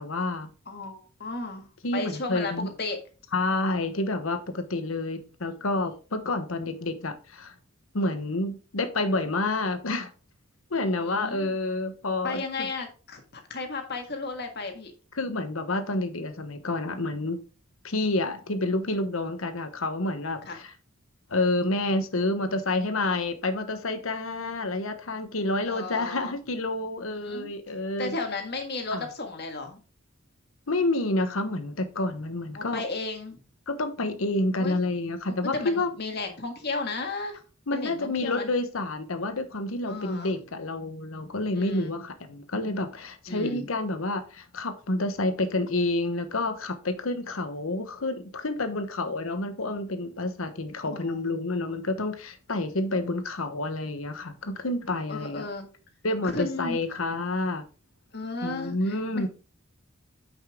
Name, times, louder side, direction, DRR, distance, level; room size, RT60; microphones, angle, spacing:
voice 1, 0.0-0.5 1.8-2.7 3.3-7.5 7.9-10.1 10.7-12.7 15.1-17.4 17.8-20.7 21.3-28.1 28.9-29.1 30.7-32.8 33.7-35.9 37.7-55.5 56.0-57.6 58.4-59.3, left 2 dB, 80° left, 1.1 m, -29 dB
voice 2, 0.7-1.7 1.9-3.0 10.7-11.5 12.2-13.2 13.5-14.9 20.4-20.6 25.7-26.3 27.1-27.5 28.0-29.8 32.5-33.4 34.6-34.8 35.3-37.4 37.7-38.5 39.9-40.4 41.5-42.0 43.3-43.7 50.9-51.2 55.1-55.7 56.2-56.8 58.1-59.3, left 3 dB, 50° left, 1.7 m, -34 dB
9.1 x 5.6 x 3.6 m
head